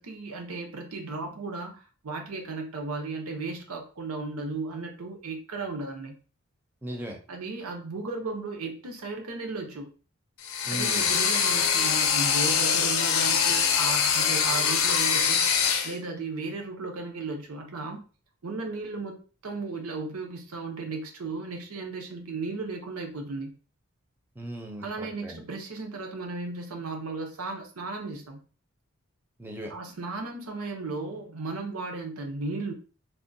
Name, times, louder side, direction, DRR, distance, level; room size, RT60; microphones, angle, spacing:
voice 1, 0.0-6.2 7.3-9.9 10.7-15.4 15.8-18.0 18.4-23.5 24.8-28.4 29.7-32.7, right 3 dB, 85° right, 3 dB, 0.8 m, -35 dB
voice 2, 6.8-7.2 10.6-11.2 24.4-25.4 29.4-29.7, right 1 dB, 10° right, 1 dB, 0.5 m, -37 dB
sound 1, 10.4-15.9, left 7 dB, 70° left, 0.5 m, -24 dB
3.5 x 2.2 x 2.6 m, 0.37 s
head